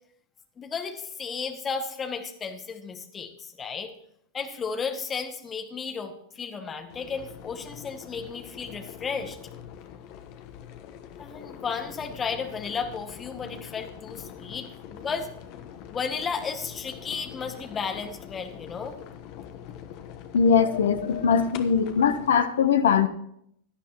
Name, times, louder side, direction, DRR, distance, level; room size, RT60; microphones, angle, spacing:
voice 1, 0.6-3.9 4.3-9.4 11.2-15.3 15.9-19.0, left 5 dB, 20° left, 1.8 m, -34 dB
sound 1, 6.9-22.4, left 9 dB, 45° left, 1.2 m, -43 dB
voice 2, 20.3-23.1, left 6 dB, 65° left, 1.1 m, -21 dB
17.0 x 11.5 x 3.0 m
figure-of-eight pair, 90°, 0 cm